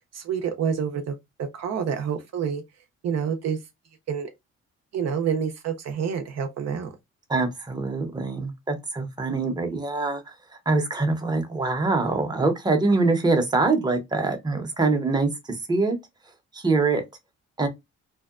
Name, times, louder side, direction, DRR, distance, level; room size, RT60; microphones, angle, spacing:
voice 1, 0.1-1.1 1.4-2.6 3.0-3.6 4.1-4.3 4.9-6.9, right 7 dB, 60° right, 0.6 m, -27 dB
voice 2, 7.3-16.0 16.5-17.0 17.6-17.7, right 3 dB, 15° right, 0.7 m, -24 dB
2.7 x 2.1 x 2.3 m
cardioid pair, 90°, 30 cm